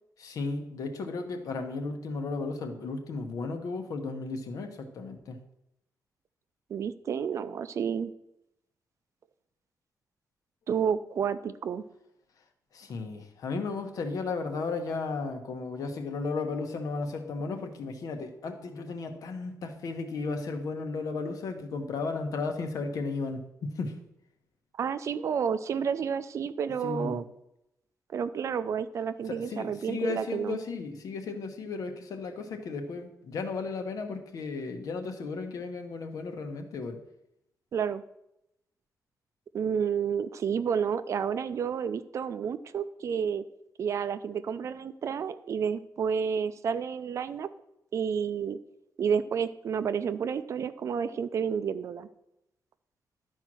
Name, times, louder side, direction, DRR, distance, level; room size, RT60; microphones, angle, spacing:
voice 1, 0.2-5.4 12.7-24.0 26.8-27.2 29.2-37.0, left 4 dB, 70° left, 5 dB, 1.2 m, -34 dB
voice 2, 6.7-8.1 10.7-11.8 24.8-27.2 28.1-30.6 37.7-38.0 39.5-43.4 43.8-47.5 47.9-48.6 49.0-52.1, right 7 dB, 55° right, 13 dB, 0.5 m, -30 dB
11.5 x 4.6 x 6.1 m, 0.83 s
wide cardioid pair, 180°, 6 cm